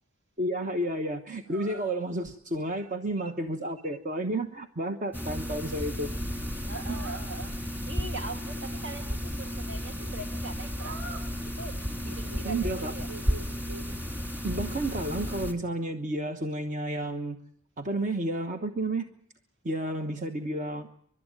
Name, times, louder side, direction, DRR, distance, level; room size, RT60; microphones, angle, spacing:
voice 1, 0.4-6.1 6.9-7.0 12.4-12.9 14.4-17.4 17.8-19.1 19.6-20.9, right 1 dB, 35° right, 1.1 m, -31 dB
sound 1, 1.5-1.9 6.9-7.3 10.7-11.3 11.8-12.7 13.1-13.9, right 4 dB, 75° right, 4.7 m, -44 dB
sound 2, 5.1-15.5, equal, 10° right, 2.5 m, -33 dB
voice 2, 6.7-13.1, right 2 dB, 60° right, 2.6 m, -42 dB
29.5 x 12.5 x 9.1 m
head